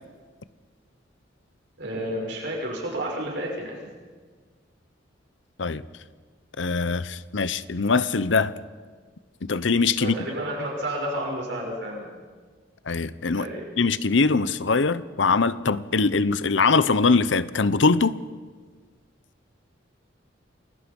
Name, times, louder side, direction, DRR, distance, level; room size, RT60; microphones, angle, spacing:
voice 1, 1.8-3.8 10.0-12.1 13.3-13.6, right 1 dB, 65° right, -1 dB, 6.2 m, -31 dB
voice 2, 6.6-8.5 9.4-10.2 12.9-13.5 13.8-18.2, left 4 dB, 75° left, 16 dB, 0.8 m, -22 dB
29.0 x 21.0 x 5.4 m, 1.5 s
head